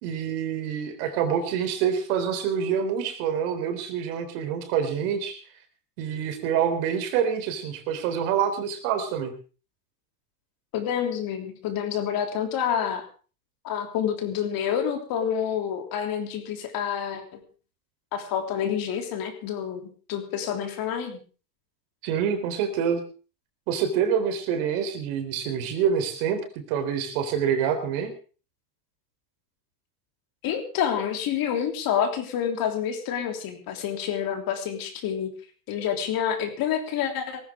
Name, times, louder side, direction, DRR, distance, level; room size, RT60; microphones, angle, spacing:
voice 1, 0.0-5.4 6.0-9.3 22.0-23.0 23.7-26.4 26.7-28.1, right 8 dB, 60° right, 7 dB, 3.9 m, -26 dB
voice 2, 10.7-13.0 13.6-17.4 18.1-21.2 30.4-35.3 35.7-37.5, left 8 dB, 45° left, 5 dB, 3.3 m, -28 dB
19.0 x 14.5 x 3.7 m, 0.37 s
supercardioid pair, 115°, 48 cm